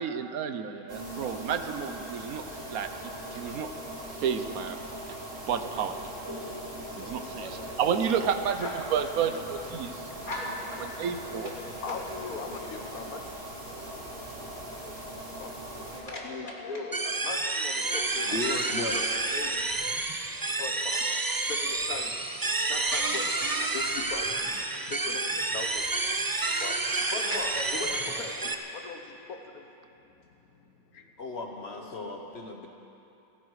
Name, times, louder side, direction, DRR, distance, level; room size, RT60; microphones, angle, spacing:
voice 1, 0.0-2.4 2.7-3.7 4.2-4.8 5.5-6.0 7.0-9.9 11.0-11.5, right 7 dB, 80° right, 9 dB, 1.3 m, -31 dB
sound 1, 0.9-16.0, right 1 dB, 55° right, 3.6 m, -40 dB
voice 2, 5.4-6.1 6.7-7.7 8.1-8.3 8.6-8.8 10.3-13.1 15.9-16.8 27.1-28.5 31.6-32.2, left 1 dB, 35° left, -4 dB, 2.8 m, -41 dB
voice 3, 9.8-10.4 11.1-11.5 11.8-13.2 14.1-14.3 14.8-14.9 15.3-15.5 16.2-18.3 19.3-19.8 20.6-21.2 21.5-22.1 22.7-23.3 23.7-24.3 24.8-25.8 26.4-28.3 28.7-29.7 30.5-31.1, left 5 dB, 90° left, 4 dB, 1.6 m, -40 dB
sound 2, 16.9-28.5, right 3 dB, 30° right, 0.4 m, -29 dB
voice 4, 18.3-19.3 31.2-32.7, left 3 dB, 50° left, 2 dB, 1.2 m, -35 dB
30.0 x 10.0 x 4.8 m, 2.8 s
omnidirectional pair, 1.5 m